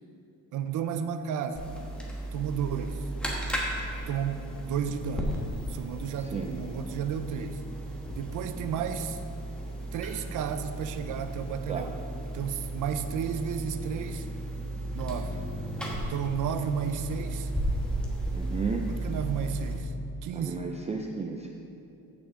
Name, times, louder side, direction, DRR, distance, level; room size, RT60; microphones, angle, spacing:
voice 1, 0.5-1.7 2.3-3.0 4.1-5.3 5.7-7.6 8.2-9.2 9.9-11.9 12.3-14.3 14.9-15.4 16.0-17.5 18.9-19.9 20.2-20.6, right 7 dB, 55° right, 10 dB, 0.6 m, -32 dB
sound 1, 1.6-19.8, right 1 dB, 5° left, 1.1 m, -35 dB
voice 2, 6.2-6.5 11.7-11.9 18.3-18.9 20.3-21.5, right 5 dB, 20° right, 2 dB, 0.3 m, -33 dB
14.5 x 6.0 x 3.7 m, 2.7 s
cardioid pair, 155°, 37 cm